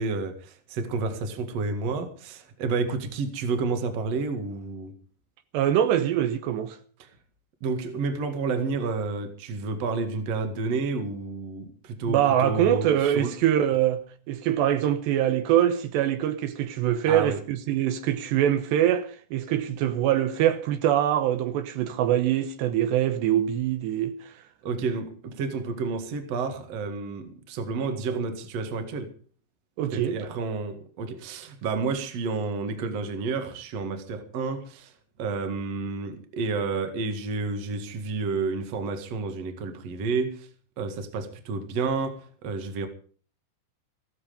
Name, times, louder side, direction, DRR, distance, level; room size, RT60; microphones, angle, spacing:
voice 1, 0.0-4.9 7.0-7.1 7.6-13.3 17.1-17.4 24.6-29.1 29.9-40.5 40.8-42.9, right 4 dB, 45° right, 2.4 m, -30 dB
voice 2, 5.5-6.8 12.1-14.0 14.3-24.2 29.8-30.2, right 11 dB, 80° right, 3.1 m, -24 dB
15.0 x 13.5 x 5.2 m
omnidirectional pair, 5.0 m